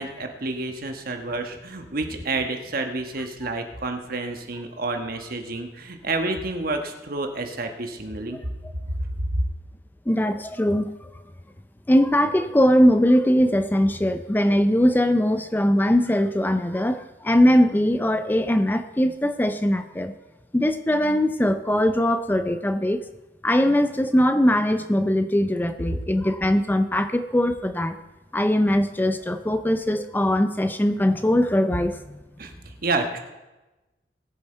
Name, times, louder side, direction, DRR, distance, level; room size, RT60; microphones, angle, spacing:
voice 1, 0.0-8.4 9.2-9.3 32.4-33.2, right 2 dB, 55° right, 5 dB, 1.3 m, -29 dB
voice 2, 10.1-11.1 11.9-20.1 20.5-23.0 23.4-28.0 28.3-32.0, equal, 10° left, 9 dB, 0.4 m, -21 dB
20.0 x 7.0 x 4.5 m, 1.1 s
head